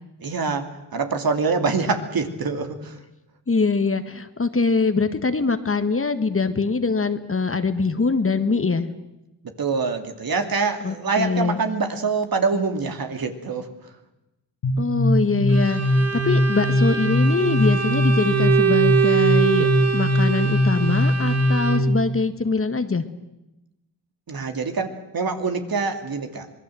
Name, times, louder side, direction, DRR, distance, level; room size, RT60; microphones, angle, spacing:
voice 1, 0.2-3.0 9.4-13.7 24.3-26.5, right 4 dB, 55° right, 6 dB, 2.8 m, -25 dB
voice 2, 3.5-8.9 10.8-11.6 14.8-19.7 19.9-23.0, left 4 dB, 30° left, 9 dB, 1.7 m, -23 dB
sound 1, 14.6-22.2, equal, 60° left, 2.7 m, -21 dB
Bowed string instrument, 15.5-22.1, right 8 dB, 35° right, 1.6 m, -24 dB
25.5 x 20.0 x 7.8 m, 0.94 s
cardioid pair, 75°, 43 cm